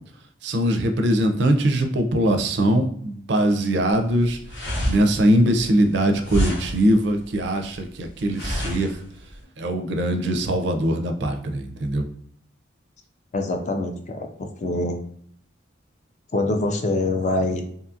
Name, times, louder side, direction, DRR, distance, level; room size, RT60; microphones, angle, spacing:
voice 1, 0.4-4.4 4.9-9.0 9.6-12.0, right 1 dB, 60° right, 5 dB, 0.4 m, -21 dB
sound 1, 3.9-9.4, equal, 90° left, 1.1 m, -29 dB
voice 2, 13.3-15.0 16.3-17.6, left 2 dB, 35° left, 5 dB, 0.3 m, -24 dB
2.7 x 2.4 x 2.6 m, 0.63 s
head